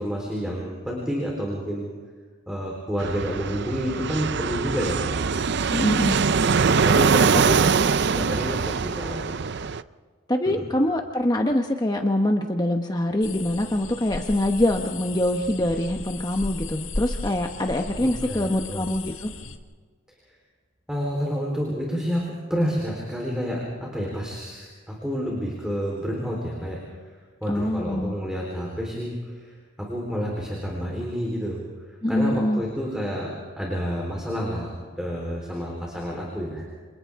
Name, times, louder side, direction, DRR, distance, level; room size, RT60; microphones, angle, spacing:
voice 1, 0.0-1.9 2.5-5.2 6.4-7.3 8.1-9.5 10.5-10.6 18.0-18.9 20.9-27.1 27.4-36.6, equal, 5° right, -2 dB, 4.0 m, -29 dB
Fixed-wing aircraft airplane, 3.0-9.8, right 5 dB, 55° right, 0.5 m, -22 dB
voice 2, 5.7-6.2 7.5-7.6 10.3-19.3 27.5-28.2 32.0-32.6, left 1 dB, 20° left, 3 dB, 1.0 m, -24 dB
sound 1, 13.2-19.6, left 3 dB, 65° left, 1.6 m, -35 dB
29.0 x 27.5 x 3.7 m, 1.5 s
head